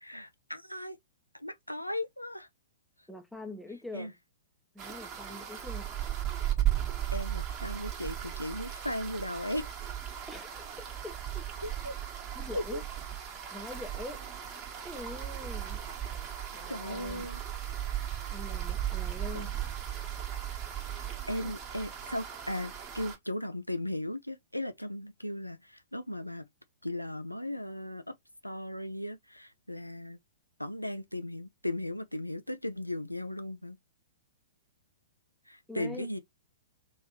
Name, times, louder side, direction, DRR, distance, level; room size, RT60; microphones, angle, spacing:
voice 1, 0.0-1.0 1.3-2.5 3.9-4.1 7.1-9.7 11.6-12.0 12.5-12.8 16.7-17.4 19.3-19.5 21.0-26.5 26.8-28.1 28.4-30.2 30.6-33.8 35.5-36.2, left 1 dB, 90° left, 0.5 m, -37 dB
voice 2, 3.1-4.1 4.7-5.9 10.3-11.5 12.3-12.8 13.5-14.2 14.8-15.8 16.5-17.2 18.3-19.5 21.4-21.5 35.7-36.1, left 2 dB, ahead, 0.7 m, -44 dB
sound 1, 4.8-23.2, right 11 dB, 25° right, 1.2 m, -36 dB
3.4 x 3.3 x 2.8 m
figure-of-eight pair, 110°, 0 cm